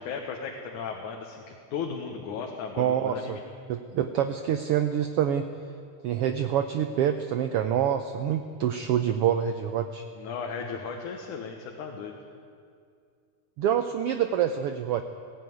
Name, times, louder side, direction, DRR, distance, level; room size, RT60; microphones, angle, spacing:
voice 1, 0.0-3.4 10.2-12.1, left 6 dB, 90° left, 2 dB, 2.8 m, -36 dB
voice 2, 2.8-3.4 3.7-5.5 6.0-10.0 13.6-15.0, right 9 dB, 75° right, 8 dB, 1.4 m, -26 dB
17.5 x 16.5 x 9.4 m, 2.3 s
omnidirectional pair, 3.4 m